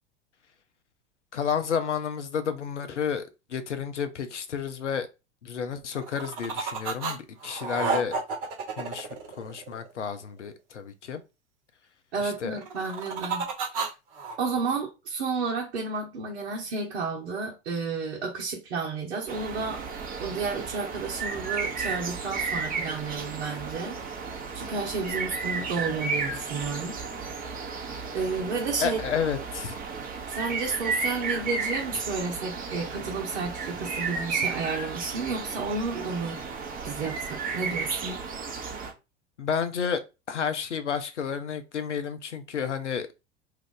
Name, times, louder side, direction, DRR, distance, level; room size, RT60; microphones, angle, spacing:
voice 1, 1.3-5.1 5.4-8.1 8.8-9.1 9.4-11.2 12.2-12.6 28.8-29.7 39.4-40.0 40.3-43.1, left 7 dB, 85° left, 0.7 m, -31 dB
sound 1, 6.0-7.2 7.4-9.9 12.6-14.4, right 4 dB, 50° right, 1.1 m, -31 dB
voice 2, 12.1-13.5 13.7-13.9 14.4-19.8 20.2-24.0 24.5-27.0 28.1-29.0 30.3-36.4 36.8-38.2, right 4 dB, 70° right, 1.0 m, -31 dB
sound 2, 19.3-38.9, right 4 dB, 25° right, 0.9 m, -33 dB
2.8 x 2.4 x 3.7 m
figure-of-eight pair, 85°, 34 cm